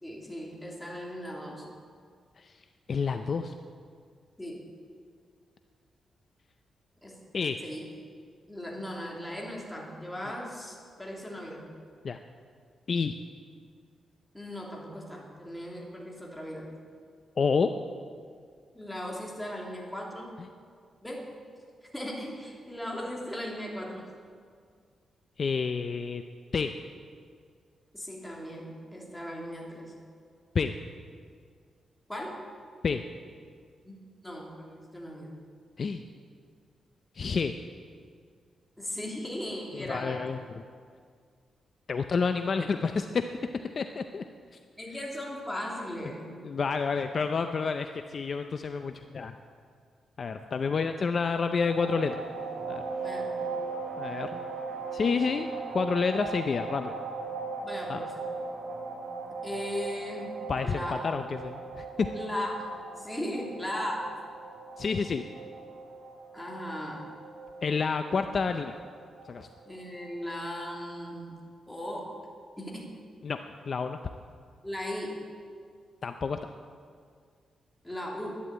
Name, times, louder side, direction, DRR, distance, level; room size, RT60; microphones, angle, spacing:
voice 1, 0.0-1.6 4.4-4.6 7.0-7.2 7.6-7.8 8.5-11.7 14.3-16.7 18.7-20.4 21.0-21.3 21.9-24.1 27.9-30.0 32.1-32.4 33.8-33.9 34.2-35.3 38.8-40.2 44.8-46.4 53.0-53.5 57.6-58.2 59.4-60.4 60.6-61.0 62.1-62.6 63.0-64.1 66.3-67.1 69.6-71.4 71.7-72.1 72.6-72.9 74.6-75.2 77.8-78.4, left 1 dB, 5° left, -2 dB, 2.8 m, -37 dB
voice 2, 2.9-3.5 7.3-7.6 12.0-12.2 12.9-13.2 17.4-17.7 25.4-26.2 26.5-26.7 30.5-30.7 32.8-33.0 35.8-36.0 37.1-37.5 39.7-40.6 41.9-43.4 43.8-44.2 46.4-49.3 50.2-52.2 52.7-52.8 54.0-54.4 54.9-55.5 55.7-56.9 57.9-58.0 60.5-62.1 64.8-65.2 67.6-68.7 69.3-69.5 73.2-73.4 73.7-74.0 76.0-76.4, left 5 dB, 45° left, 7 dB, 0.5 m, -29 dB
sound 1, 51.7-70.3, right 4 dB, 70° right, 4.4 m, -39 dB
11.5 x 10.5 x 8.7 m, 2.1 s
cardioid pair, 130°, 0 cm